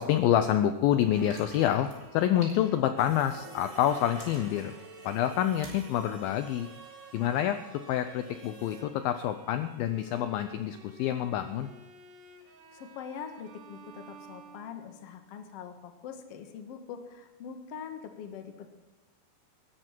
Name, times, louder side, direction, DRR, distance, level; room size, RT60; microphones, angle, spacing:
voice 1, 0.0-4.7 5.0-6.7 7.1-7.6 7.9-11.7, left 11 dB, 80° left, 9 dB, 2.2 m, -27 dB
Bowed string instrument, 1.0-15.3, right 5 dB, 80° right, 3.9 m, -53 dB
sound 1, 1.1-3.5 3.8-5.9 6.4-6.5, equal, 20° left, 5.8 m, -49 dB
sound 2, 3.0-8.8, right 2 dB, 25° right, 0.7 m, -51 dB
voice 2, 12.7-18.7, left 7 dB, 55° left, 6 dB, 1.8 m, -43 dB
19.5 x 14.5 x 4.5 m, 1.1 s
omnidirectional pair, 4.8 m